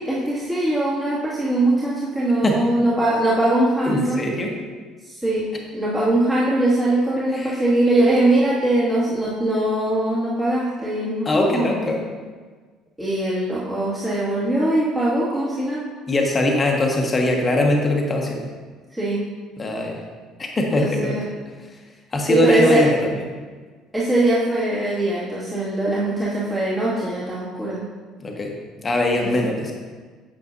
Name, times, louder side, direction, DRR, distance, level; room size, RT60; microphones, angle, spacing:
voice 1, 0.0-4.2 5.0-5.4 5.7-11.9 13.0-15.8 18.9-19.2 20.8-21.2 22.3-22.8 23.9-27.8, right 1 dB, 10° right, -10 dB, 2.2 m, -21 dB
voice 2, 3.9-4.5 7.3-7.6 11.2-12.0 16.1-18.5 19.6-20.0 20.4-21.2 22.1-23.3 28.2-28.5 28.8-29.7, left 1 dB, 25° left, 1 dB, 1.3 m, -21 dB
9.4 x 8.2 x 2.7 m, 1.4 s
figure-of-eight pair, 55°, 0 cm